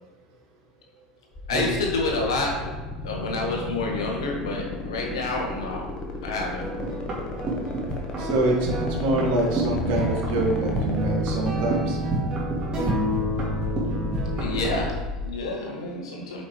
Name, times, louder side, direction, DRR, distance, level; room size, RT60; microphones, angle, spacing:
sound 1, 1.3-15.3, left 3 dB, 30° left, 1.4 m, -34 dB
voice 1, 1.5-5.9 6.2-6.7 14.3-16.4, left 2 dB, 70° left, 0 dB, 1.6 m, -29 dB
sound 2, 6.6-14.9, right 1 dB, 30° right, 2.5 m, -28 dB
voice 2, 8.2-12.0, right 1 dB, 55° right, -1 dB, 1.9 m, -25 dB
8.4 x 5.7 x 3.3 m, 1.1 s
figure-of-eight pair, 70°, 3 cm